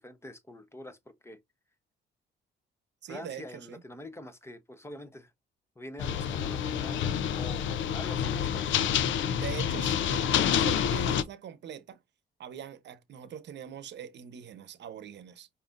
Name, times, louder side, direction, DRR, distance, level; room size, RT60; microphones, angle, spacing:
voice 1, 0.0-1.4 3.1-5.3 5.8-8.9, left 1 dB, 15° left, 0.9 m, -45 dB
voice 2, 3.0-3.8 9.3-12.0 12.4-15.5, right 9 dB, 60° right, 0.9 m, -42 dB
sound 1, 6.0-11.2, left 9 dB, 75° left, 0.6 m, -28 dB
5.2 x 2.8 x 2.5 m
cardioid pair, 90°, 20 cm